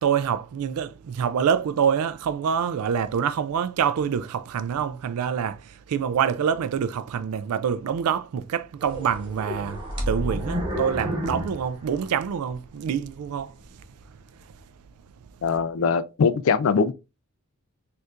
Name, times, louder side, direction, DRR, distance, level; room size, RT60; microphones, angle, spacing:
voice 1, 0.0-9.8 10.1-13.6, right 7 dB, 85° right, 0.3 m, -26 dB
sound 1, 8.8-12.6 13.0-13.1 13.7-13.9, equal, 20° right, 1.0 m, -31 dB
voice 2, 15.4-16.9, left 5 dB, 65° left, 0.3 m, -22 dB
4.3 x 2.5 x 2.4 m
head